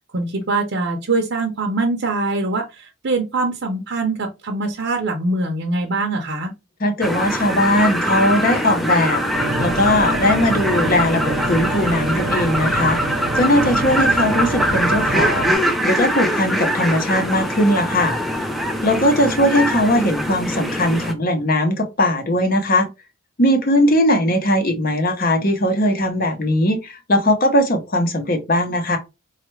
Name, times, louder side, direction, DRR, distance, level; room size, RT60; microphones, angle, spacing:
voice 1, 0.0-6.5, right 2 dB, 55° right, 0.7 m, -23 dB
voice 2, 6.8-9.2 9.6-13.0 13.3-15.6 15.8-18.2 18.8-22.9 23.4-29.0, left 1 dB, 40° left, 0.8 m, -19 dB
sound 1, 7.0-21.1, equal, ahead, 0.4 m, -22 dB
sound 2, 9.3-15.5, right 2 dB, 85° right, 1.0 m, -28 dB
4.3 x 2.4 x 3.1 m
head